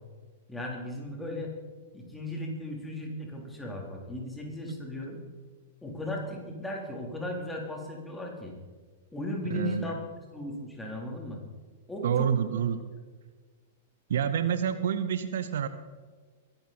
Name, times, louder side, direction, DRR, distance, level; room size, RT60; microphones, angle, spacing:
voice 1, 0.5-1.5 1.9-5.2 5.8-8.5 9.1-11.4 11.9-12.3, left 1 dB, 5° left, 0 dB, 3.6 m, -36 dB
voice 2, 9.4-9.9 12.0-12.8 14.1-15.7, right 8 dB, 60° right, 12 dB, 0.8 m, -28 dB
22.0 x 11.5 x 4.3 m, 1.5 s
figure-of-eight pair, 100°, 0 cm